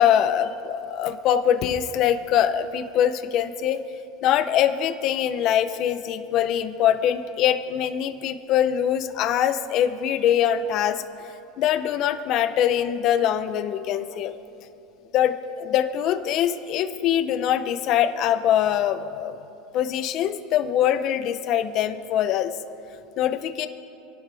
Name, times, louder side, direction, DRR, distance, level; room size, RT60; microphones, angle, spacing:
voice 1, 0.0-3.8 4.2-11.3 11.6-14.3 15.1-19.4 19.7-22.5 23.2-23.7, left 10 dB, 40° left, 10 dB, 0.7 m, -23 dB
27.0 x 11.5 x 3.5 m, 2.8 s
supercardioid pair, 170°, 0 cm